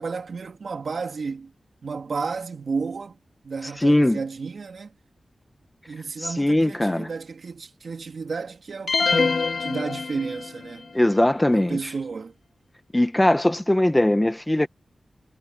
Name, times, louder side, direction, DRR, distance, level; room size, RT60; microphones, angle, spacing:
voice 1, 0.0-1.5 1.8-3.2 3.4-4.9 5.9-10.9 11.5-12.3, right 4 dB, 70° right, 3.6 m, -32 dB
voice 2, 3.8-4.2 6.2-7.1 10.9-11.8 12.9-14.7, left 1 dB, 15° left, 1.6 m, -20 dB
sound 1, 8.9-10.7, left 4 dB, 65° left, 2.6 m, -24 dB
cardioid pair, 60°, 0 cm